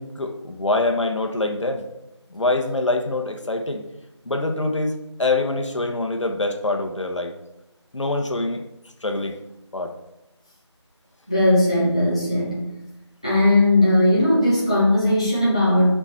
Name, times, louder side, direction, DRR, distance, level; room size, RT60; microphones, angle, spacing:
voice 1, 0.0-1.9 2.3-3.8 4.2-7.3 7.9-8.6 9.0-9.4 9.7-9.9, left 2 dB, 80° left, 4 dB, 1.1 m, -24 dB
voice 2, 11.3-12.7 13.2-16.0, left 1 dB, 10° left, -8 dB, 0.9 m, -18 dB
6.9 x 5.6 x 4.4 m, 0.91 s
figure-of-eight pair, 180°, 15 cm